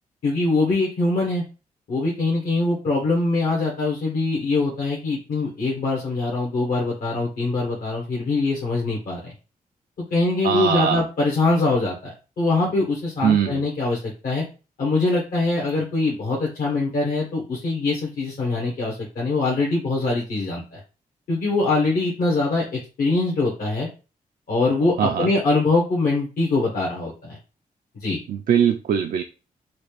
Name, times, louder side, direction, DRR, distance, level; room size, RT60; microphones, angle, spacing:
voice 1, 0.2-1.4 1.9-9.3 10.0-14.4 14.8-20.8 21.3-23.9 24.5-27.4 28.0-28.2, left 3 dB, 70° left, -3 dB, 1.2 m, -23 dB
voice 2, 10.4-11.0 13.2-13.7 25.0-25.3 28.3-29.2, right 8 dB, 65° right, 5 dB, 0.4 m, -21 dB
4.2 x 2.4 x 3.2 m, 0.33 s
cardioid pair, 65°, 15 cm